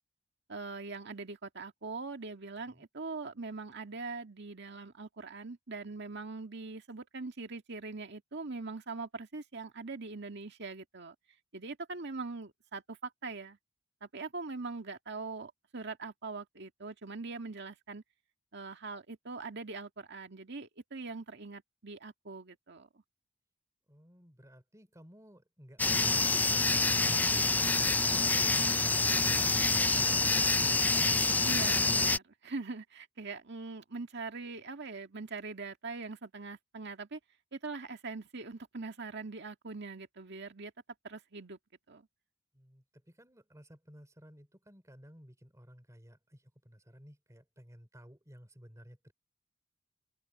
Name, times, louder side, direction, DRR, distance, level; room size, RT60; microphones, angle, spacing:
voice 1, 0.5-11.2 11.5-13.6 14.0-18.0 18.5-23.0 31.4-37.2 37.5-40.7 41.0-41.6 41.9-42.1, right 3 dB, 60° right, 2.0 m, -42 dB
voice 2, 23.9-28.7 42.5-49.1, equal, 15° right, 3.8 m, -55 dB
sound 1, 25.8-32.2, left 3 dB, 10° left, 0.3 m, -27 dB
open air
head